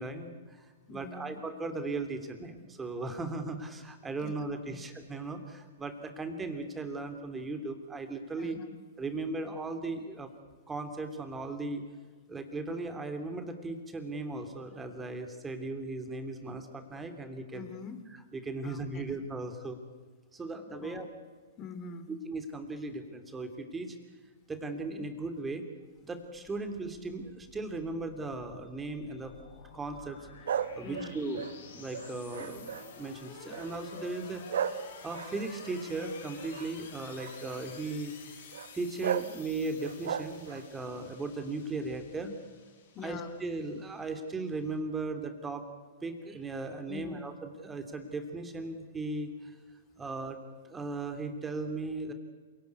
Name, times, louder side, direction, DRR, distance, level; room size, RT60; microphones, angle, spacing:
voice 1, 0.0-8.6 9.0-10.3 10.7-11.8 12.3-17.7 18.3-19.8 20.3-21.1 22.2-24.0 24.5-25.7 26.0-29.3 29.7-30.3 30.7-31.4 31.7-34.4 35.0-38.1 38.7-42.3 43.0-45.6 46.0-49.5 50.0-50.4 50.6-52.1, right 3 dB, 15° right, 7 dB, 3.0 m, -37 dB
voice 2, 0.9-1.4 4.2-4.3 4.7-4.8 8.4-8.7 17.5-18.0 18.6-19.2 20.8-21.1 21.6-22.1 30.8-31.4 42.9-43.3 46.9-47.2, left 5 dB, 30° left, 10 dB, 2.9 m, -44 dB
sound 1, 26.3-44.7, left 5 dB, 65° left, 6.5 m, -51 dB
sound 2, 30.5-33.0 33.5-33.9 34.5-36.7 37.2-37.6 38.5-38.7 39.0-39.3 39.8-40.7, right 8 dB, 65° right, 1.3 m, -35 dB
27.5 x 18.5 x 8.4 m, 1.4 s
hypercardioid pair, 120°, 0 cm